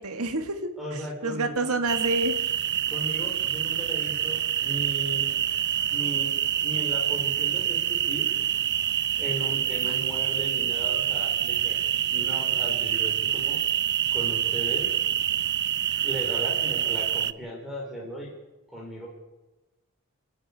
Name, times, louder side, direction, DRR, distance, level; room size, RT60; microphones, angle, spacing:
voice 1, 0.0-2.4 9.8-10.0, right 2 dB, 70° right, 6 dB, 1.8 m, -29 dB
voice 2, 0.8-1.8 2.9-5.3 5.9-6.3 6.6-8.3 9.2-11.8 12.1-13.6 14.1-14.9 16.0-18.3 18.7-19.1, equal, ahead, -2 dB, 4.0 m, -37 dB
sound 1, 1.9-17.3, right 10 dB, 50° right, 0.6 m, -26 dB
28.5 x 9.6 x 9.6 m, 1.1 s
head